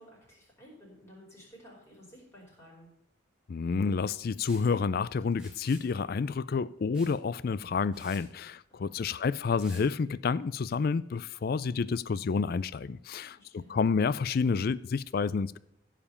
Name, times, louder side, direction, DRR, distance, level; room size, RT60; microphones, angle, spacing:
voice 1, 0.0-2.9 8.8-9.0 13.2-13.8, equal, 15° left, 4.9 m, -54 dB
voice 2, 3.5-15.6, left 5 dB, 50° left, 0.4 m, -29 dB
Liquid, 4.4-4.7 5.3-5.9 6.9-7.2 7.6-7.7 7.9-8.2 9.6-9.8, right 1 dB, 5° right, 2.3 m, -51 dB
15.0 x 5.0 x 6.9 m
head